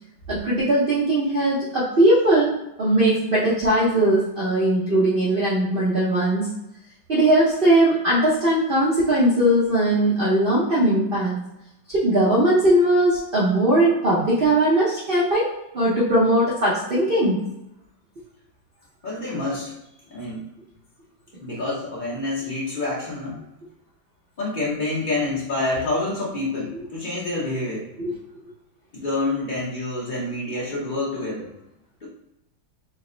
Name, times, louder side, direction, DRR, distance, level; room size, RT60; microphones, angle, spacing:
voice 1, 0.3-6.5 7.1-11.3 11.9-15.5 15.7-17.4 28.0-28.1, right 1 dB, 60° right, -8 dB, 0.6 m, -19 dB
voice 2, 19.0-19.7 20.1-20.5 21.4-23.4 24.4-27.9 28.9-31.5, left 2 dB, 80° left, -6 dB, 0.4 m, -27 dB
4.0 x 2.1 x 3.7 m, 0.85 s
omnidirectional pair, 2.2 m